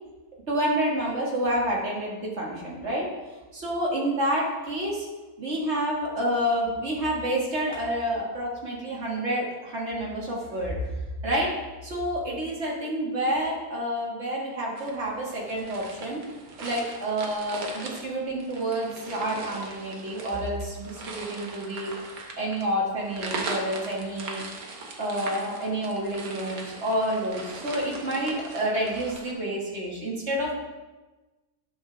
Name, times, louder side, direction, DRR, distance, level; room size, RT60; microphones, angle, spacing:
voice 1, 0.5-3.1 3.5-5.1 5.4-10.8 11.2-11.5 11.8-16.2 16.6-21.9 22.4-24.4 25.0-30.5, right 1 dB, 50° right, -4 dB, 2.1 m, -29 dB
sound 1, 14.8-29.3, right 3 dB, 85° right, 1.5 m, -39 dB
10.5 x 5.8 x 3.3 m, 1.2 s
omnidirectional pair, 1.5 m